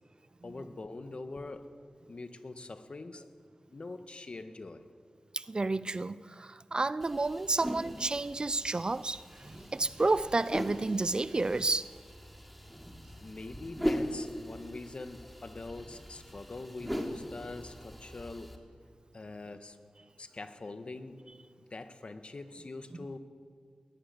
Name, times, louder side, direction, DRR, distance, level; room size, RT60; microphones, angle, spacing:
voice 1, 0.4-1.7 2.1-3.2 3.7-4.9 13.2-18.6 19.1-19.8 20.2-21.2 21.7-23.2, left 3 dB, 55° left, 1.6 m, -43 dB
voice 2, 5.3-11.9, right 3 dB, 40° right, 0.6 m, -31 dB
sound 1, 7.0-18.6, equal, ahead, 3.1 m, -40 dB
21.0 x 17.5 x 9.7 m
cardioid pair, 55°, 2 cm